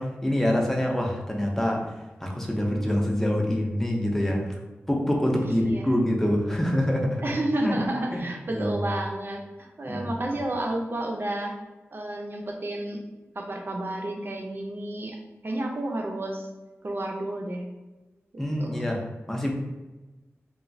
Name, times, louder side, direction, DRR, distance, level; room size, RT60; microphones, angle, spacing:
voice 1, 0.0-1.9 2.2-4.5 4.9-7.2 7.6-7.8 8.1-8.8 9.9-10.1 18.4-19.5, left 1 dB, 10° left, 0 dB, 0.5 m, -26 dB
voice 2, 5.4-5.8 7.2-11.6 11.9-13.0 13.3-15.2 15.4-16.5 16.8-17.7 18.6-18.8, right 1 dB, 45° right, 1 dB, 0.5 m, -31 dB
3.0 x 2.3 x 2.6 m, 1.2 s
wide cardioid pair, 65°, 5 cm